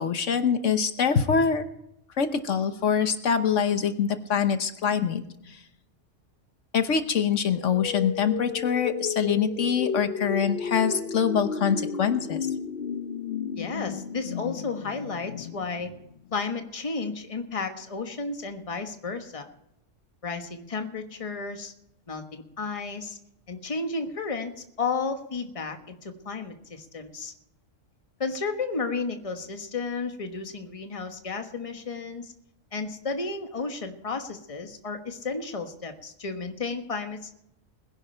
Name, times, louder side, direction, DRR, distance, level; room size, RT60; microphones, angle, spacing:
voice 1, 0.0-1.6 2.2-5.6 6.7-12.5, left 7 dB, 75° left, 9 dB, 1.3 m, -24 dB
sound 1, 7.5-16.4, left 7 dB, 55° left, 0.9 m, -33 dB
voice 2, 13.6-15.9 16.3-19.5 20.2-21.7 22.1-23.2 23.5-27.3 28.2-32.3 32.7-37.3, left 4 dB, 30° left, 6 dB, 1.3 m, -33 dB
21.0 x 10.5 x 4.5 m, 0.81 s
omnidirectional pair, 1.3 m